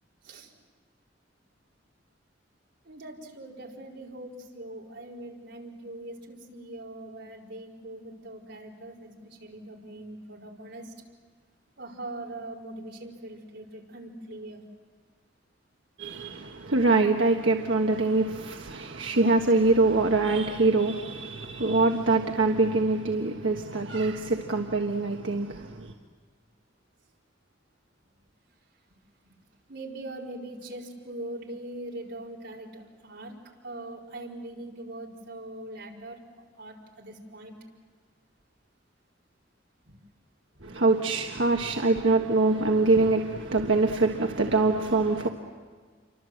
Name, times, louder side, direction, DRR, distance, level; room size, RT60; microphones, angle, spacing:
voice 1, 2.8-10.9 11.8-14.6 29.7-33.4 33.6-37.5 39.9-40.0, right 1 dB, 65° right, 4.7 m, -41 dB
voice 2, 16.0-25.9 40.6-45.3, right 3 dB, 85° right, 1.4 m, -24 dB
29.0 x 24.5 x 7.8 m
head